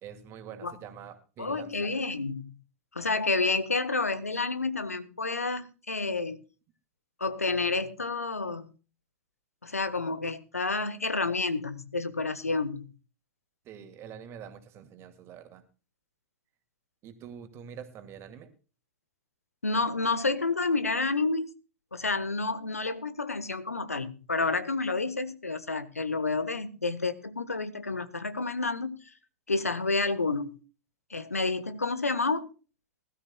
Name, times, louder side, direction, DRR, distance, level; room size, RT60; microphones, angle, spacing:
voice 1, 0.0-1.9 13.6-15.6 17.0-18.5, right 8 dB, 35° right, 2.4 m, -45 dB
voice 2, 1.4-2.5 2.9-6.4 7.2-8.7 9.6-12.9 19.6-21.5 21.9-29.0 29.5-30.6 31.1-32.5, left 3 dB, 85° left, 1.3 m, -29 dB
20.5 x 13.0 x 2.3 m
figure-of-eight pair, 95°, 8 cm